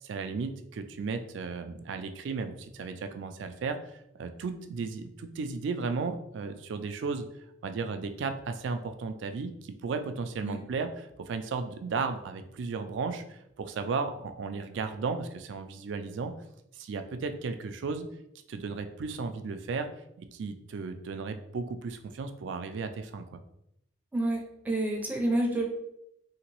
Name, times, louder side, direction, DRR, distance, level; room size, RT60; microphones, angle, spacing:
voice 1, 0.0-7.3 7.6-16.3 16.7-18.1 18.5-19.9 20.2-23.4, right 4 dB, 70° right, 8 dB, 0.3 m, -35 dB
voice 2, 24.1-25.6, right 1 dB, 10° right, 0 dB, 0.5 m, -28 dB
2.9 x 2.8 x 2.9 m, 0.79 s
head